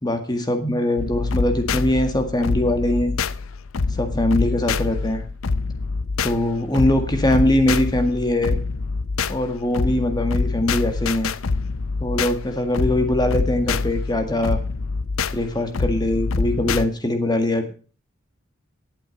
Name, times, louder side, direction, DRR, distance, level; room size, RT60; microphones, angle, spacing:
voice 1, 0.0-3.1 3.9-5.2 6.2-8.6 9.3-11.3 12.0-14.6 15.3-17.7, left 1 dB, 20° left, 7 dB, 1.8 m, -22 dB
sound 1, 1.0-16.9, left 4 dB, 85° left, 0.6 m, -26 dB
11.5 x 8.8 x 6.5 m, 0.38 s
head